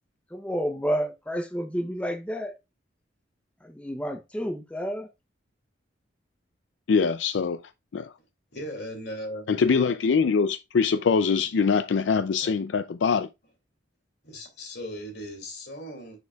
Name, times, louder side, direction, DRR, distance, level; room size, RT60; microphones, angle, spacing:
voice 1, 0.3-2.5 3.6-5.1, equal, 5° left, 0.6 m, -30 dB
voice 2, 6.9-7.6 7.9-8.1 9.5-13.3, left 5 dB, 80° left, 0.4 m, -23 dB
voice 3, 8.5-9.6 12.4-12.5 14.2-16.2, equal, 60° left, 2.4 m, -38 dB
6.8 x 6.6 x 2.3 m
head